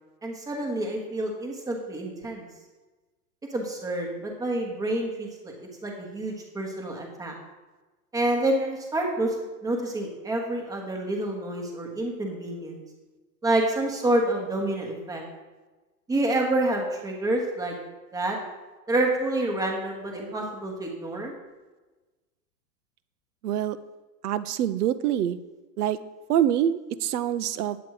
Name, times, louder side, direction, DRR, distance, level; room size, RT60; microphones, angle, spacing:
voice 1, 0.2-2.4 3.5-7.3 8.1-9.4 9.6-12.8 13.4-15.2 16.1-17.8 18.1-18.4 18.9-21.3, right 1 dB, 5° right, 1 dB, 1.1 m, -28 dB
voice 2, 23.4-23.8 24.2-25.4 25.8-26.0 26.3-27.8, right 10 dB, 65° right, 14 dB, 0.7 m, -25 dB
9.2 x 7.9 x 4.7 m, 1.2 s
supercardioid pair, 160°, 49 cm